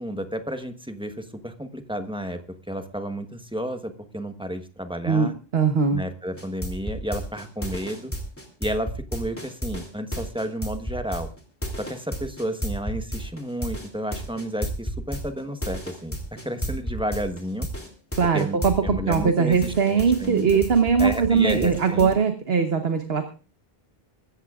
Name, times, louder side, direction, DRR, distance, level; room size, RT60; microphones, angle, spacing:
voice 1, 0.0-5.3 5.9-8.1 8.6-11.3 11.8-16.2 16.4-17.7 18.3-18.6 18.8-20.5 21.0-22.1, equal, 5° right, 7 dB, 1.1 m, -31 dB
voice 2, 5.0-6.0 18.2-23.3, right 6 dB, 75° right, 6 dB, 1.4 m, -21 dB
sound 1, 6.4-19.2 19.5-22.1, equal, 15° left, 2.7 m, -32 dB
24.5 x 14.0 x 2.4 m, 0.35 s
omnidirectional pair, 1.0 m